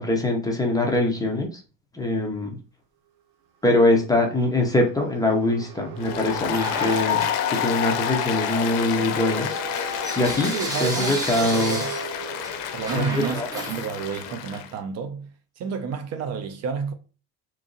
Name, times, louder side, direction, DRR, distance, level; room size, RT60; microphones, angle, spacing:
voice 1, 0.0-1.6 1.9-2.6 3.6-7.2 7.5-10.5 10.8-11.8 12.9-13.5, left 1 dB, 10° left, 0.6 m, -23 dB
sound 1, 3.7-14.1, right 10 dB, 85° right, 0.7 m, -40 dB
Applause, 6.0-14.7, left 10 dB, 70° left, 0.6 m, -29 dB
Bell / Coin (dropping), 6.5-8.0 8.4-14.4, right 1 dB, 10° right, 0.9 m, -34 dB
voice 2, 10.5-11.9 12.7-15.3 15.6-16.9, right 6 dB, 45° right, 0.5 m, -30 dB
3.0 x 2.6 x 3.7 m
cardioid pair, 135°, 36 cm